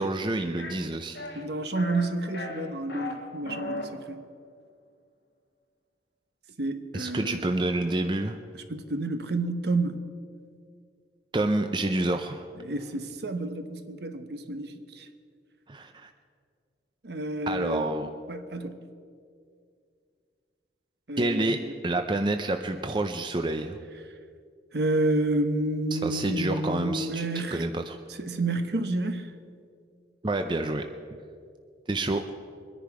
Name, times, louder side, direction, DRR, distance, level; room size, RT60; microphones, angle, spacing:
voice 1, 0.0-1.2 6.9-8.4 11.3-12.5 15.7-16.1 17.5-18.1 21.2-23.8 25.9-28.0 30.2-30.9 31.9-32.2, right 2 dB, 25° right, 6 dB, 0.5 m, -28 dB
sound 1, 0.6-0.7 1.2-1.4 1.8-2.1 2.3-3.1 3.4-3.9, left 2 dB, 70° left, 3.0 m, -35 dB
voice 2, 1.3-4.2 6.6-7.4 8.7-10.0 12.6-15.1 17.0-17.9 18.3-18.8 21.1-21.7 24.7-27.7 28.1-29.3, right 2 dB, 65° right, 8 dB, 1.0 m, -30 dB
22.5 x 10.5 x 4.8 m, 2.2 s
head